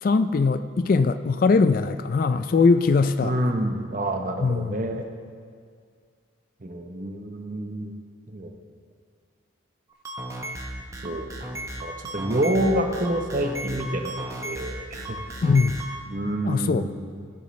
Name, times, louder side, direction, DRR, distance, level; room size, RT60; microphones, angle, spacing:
voice 1, 0.0-3.3 4.4-4.9 15.4-15.8 16.4-16.9, left 4 dB, 45° left, 11 dB, 0.3 m, -21 dB
voice 2, 3.2-5.1 6.6-7.9 8.3-8.5 11.0-11.3 11.8-15.2 16.1-17.0, right 1 dB, 40° right, 4 dB, 0.8 m, -27 dB
sound 1, 9.9-16.0, right 1 dB, 15° right, 0.7 m, -35 dB
16.0 x 7.3 x 3.2 m, 2.1 s
head